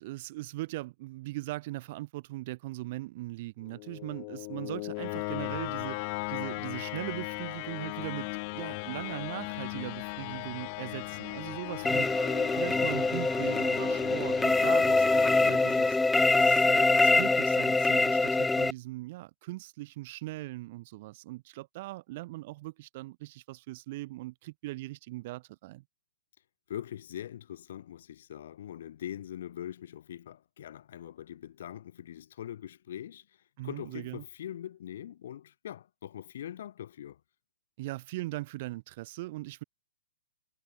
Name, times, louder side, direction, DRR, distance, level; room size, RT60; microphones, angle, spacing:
voice 1, 0.0-6.0 6.3-8.3 8.5-12.1 12.5-16.0 16.3-25.8 33.6-34.2 37.8-39.6, right 19 dB, 45° right, 4.4 m, -39 dB
sound 1, 3.6-16.6, left 34 dB, 35° left, 5.2 m, -38 dB
voice 2, 11.6-12.1 26.7-33.3 33.6-37.2, left 11 dB, 65° left, 7.3 m, -42 dB
sound 2, 11.8-18.7, left 3 dB, 5° left, 0.4 m, -24 dB
hypercardioid pair, 150°, 0 cm